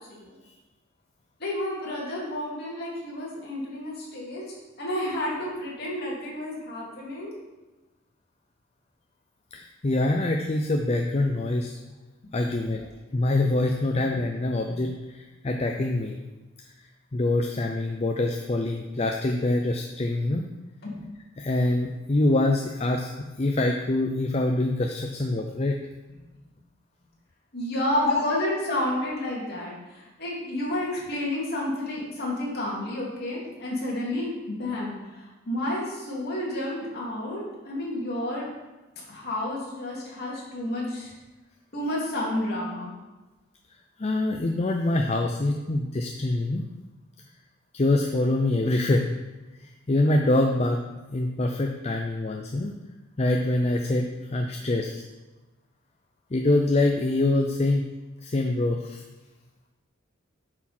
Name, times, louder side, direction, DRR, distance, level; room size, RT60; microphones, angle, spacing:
voice 1, 0.1-0.4 1.4-4.4 4.8-7.3 12.2-12.3 13.9-14.1 14.7-14.8 20.8-21.0 27.5-38.5 39.1-41.1 41.7-42.9, left 1 dB, 50° left, -5 dB, 2.8 m, -30 dB
voice 2, 9.5-11.7 12.3-12.9 13.1-15.2 15.4-16.2 17.1-20.4 21.4-25.8 28.1-28.2 44.0-46.6 47.7-49.2 49.6-50.8 51.1-52.7 53.2-55.0 56.3-57.8 58.2-59.0, left 2 dB, 30° left, 3 dB, 0.5 m, -25 dB
8.8 x 6.0 x 4.4 m, 1.1 s
head